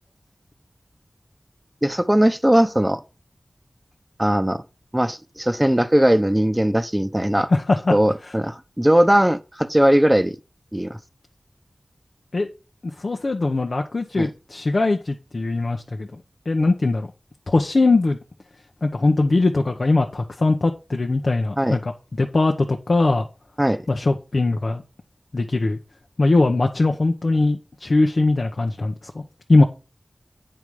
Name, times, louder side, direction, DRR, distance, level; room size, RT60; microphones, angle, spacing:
voice 1, 1.8-3.0 4.2-4.6 4.9-7.5 7.9-10.4 10.7-11.0 14.2-14.3 21.6-21.8 23.6-23.9, right 1 dB, 15° right, 0.9 m, -19 dB
voice 2, 7.5-7.9 12.3-12.5 12.8-16.2 16.5-17.1 17.5-18.2 18.8-21.9 22.2-23.3 23.9-24.8 25.3-25.8 26.2-29.2 29.5-29.6, left 2 dB, 70° left, 1.0 m, -20 dB
9.1 x 5.5 x 4.8 m
wide cardioid pair, 45°, 0 cm